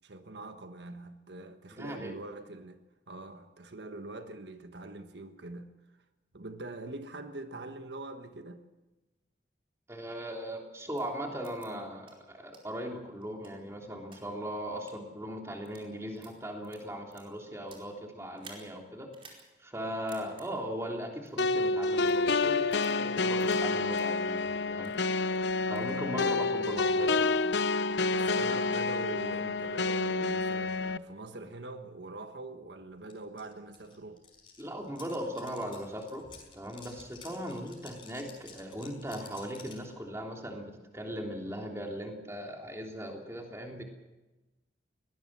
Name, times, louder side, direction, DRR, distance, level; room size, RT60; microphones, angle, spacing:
voice 1, 0.0-2.8 3.1-5.7 6.3-8.6 25.7-26.4 28.1-34.2, right 2 dB, 80° right, 1.4 m, -43 dB
voice 2, 1.7-2.1 9.9-19.1 19.6-24.9 25.7-27.4 34.6-36.2 36.5-43.8, equal, 15° right, 3.2 m, -38 dB
sound 1, 10.9-11.0 11.4-11.7 12.0-12.1 12.5-12.6 13.2-14.2 14.7-14.9 15.5-15.9 16.2-17.9 18.3-18.7 19.1-19.4 19.7-19.8 20.1-20.5 21.3-21.5 22.1-22.2 22.7-22.9 23.4-23.5 23.9-24.0 24.5-25.0 25.3-25.9, right 4 dB, 30° right, 4.6 m, -54 dB
sound 2, 21.4-31.0, left 3 dB, 80° left, 0.7 m, -28 dB
sound 3, 33.1-33.2 33.4-39.9, left 5 dB, 30° left, 5.3 m, -52 dB
22.0 x 18.5 x 7.5 m
head